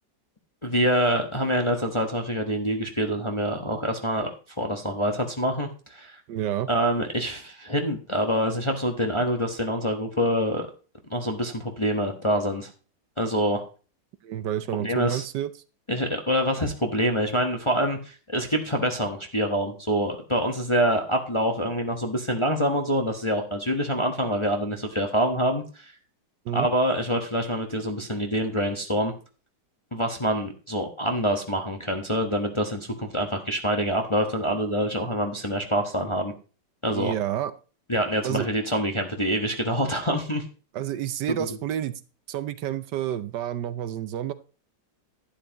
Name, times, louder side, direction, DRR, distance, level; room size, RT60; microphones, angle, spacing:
voice 1, 0.6-4.3 4.6-6.2 6.7-10.7 11.1-12.7 13.2-13.6 14.7-15.2 15.9-25.9 26.5-29.1 29.9-36.3 36.8-37.1 37.9-40.4 41.3-41.5, equal, 20° left, 3 dB, 1.0 m, -26 dB
voice 2, 6.3-6.7 14.2-15.5 26.5-26.7 36.9-37.5 38.2-38.5 40.7-42.0 42.3-44.3, right 11 dB, 70° right, 13 dB, 1.2 m, -29 dB
11.5 x 10.0 x 2.9 m, 0.35 s
omnidirectional pair, 2.0 m